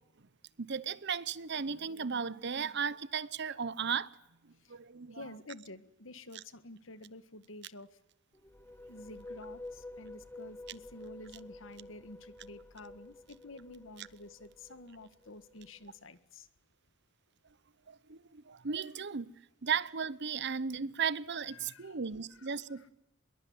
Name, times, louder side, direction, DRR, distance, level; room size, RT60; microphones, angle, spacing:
voice 1, 0.6-4.1 4.7-5.3 6.3-6.4 14.0-14.1 17.9-19.3 19.6-22.9, right 6 dB, 60° right, 0.9 m, -35 dB
voice 2, 5.1-7.9 8.9-16.5 21.5-22.0 22.4-22.5, left 2 dB, 75° left, 1.7 m, -50 dB
sound 1, 8.3-16.0, left 2 dB, 10° left, 1.0 m, -50 dB
24.5 x 22.0 x 9.6 m
head